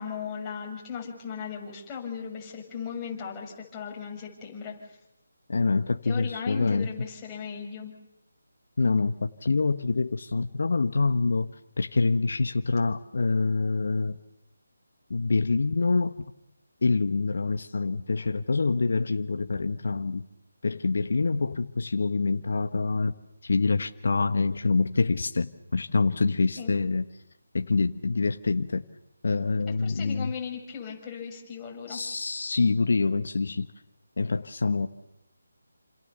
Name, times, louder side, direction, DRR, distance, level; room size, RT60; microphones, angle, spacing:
voice 1, 0.0-4.9 6.0-7.9 26.6-26.8 29.7-32.0, left 7 dB, 15° left, -1 dB, 6.8 m, -37 dB
voice 2, 5.5-6.9 8.8-11.5 11.8-14.2 15.1-16.2 16.8-20.2 20.6-23.1 23.4-27.0 27.5-28.8 29.2-30.3 31.9-33.7 34.2-34.9, left 3 dB, 60° left, 8 dB, 1.3 m, -26 dB
29.5 x 27.0 x 7.0 m, 0.87 s
figure-of-eight pair, 160°, 0 cm